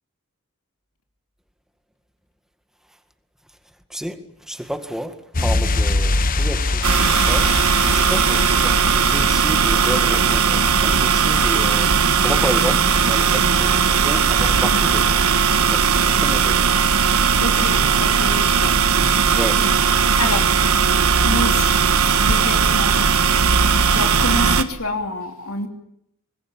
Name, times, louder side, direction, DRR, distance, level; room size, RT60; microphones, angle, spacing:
voice 1, 4.5-7.5 7.9-11.9 12.2-15.2 15.7-16.6 19.3-19.7, equal, ahead, 2.0 m, -30 dB
sound 1, 5.3-11.9 12.1-12.2, left 2 dB, 40° left, 1.1 m, -24 dB
sound 2, 6.8-24.6, right 6 dB, 80° right, 1.6 m, -17 dB
voice 2, 17.4-18.7 20.2-20.6 21.2-21.8 22.0-23.0 23.9-25.7, left 2 dB, 75° left, 3.1 m, -27 dB
25.0 x 20.0 x 9.0 m
head